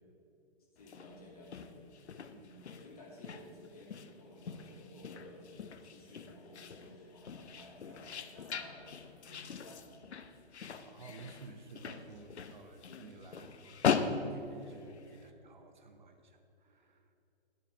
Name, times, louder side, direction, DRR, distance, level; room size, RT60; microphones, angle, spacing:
voice 1, 0.7-1.7 2.2-5.5 5.8-9.8 12.9-13.1, left 1 dB, 35° left, -2 dB, 1.9 m, -54 dB
sound 1, 0.8-15.2, left 6 dB, 90° left, 0.7 m, -40 dB
voice 2, 10.8-17.1, right 3 dB, 45° right, 6 dB, 0.6 m, -54 dB
10.0 x 5.0 x 6.6 m, 2.7 s
hypercardioid pair, 170°, 32 cm